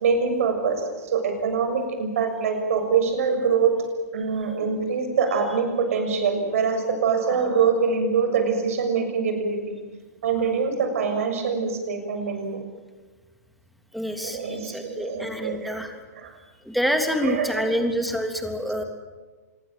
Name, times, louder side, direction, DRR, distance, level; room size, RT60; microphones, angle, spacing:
voice 1, 0.0-3.8 4.1-9.6 10.2-12.6 14.2-15.8 16.2-16.4 17.2-17.8, right 5 dB, 55° right, 6 dB, 6.9 m, -24 dB
voice 2, 13.9-15.9 16.6-18.8, equal, ahead, 5 dB, 3.2 m, -27 dB
26.0 x 22.0 x 7.7 m, 1.3 s
figure-of-eight pair, 115°, 9 cm